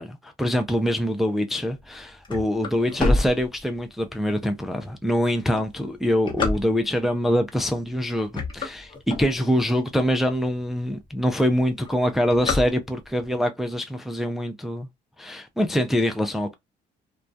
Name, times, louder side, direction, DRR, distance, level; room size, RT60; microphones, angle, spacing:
voice 1, 0.0-14.9 15.2-16.6, equal, ahead, 0.3 m, -24 dB
sound 1, 1.8-4.1 4.6-4.7 5.4-7.1 7.7-8.0 8.3-9.8 10.3-10.4 10.6-10.7 11.0-11.4 11.6-13.3, left 2 dB, 30° left, 0.8 m, -27 dB
2.2 x 2.2 x 2.5 m
cardioid pair, 110°, 17 cm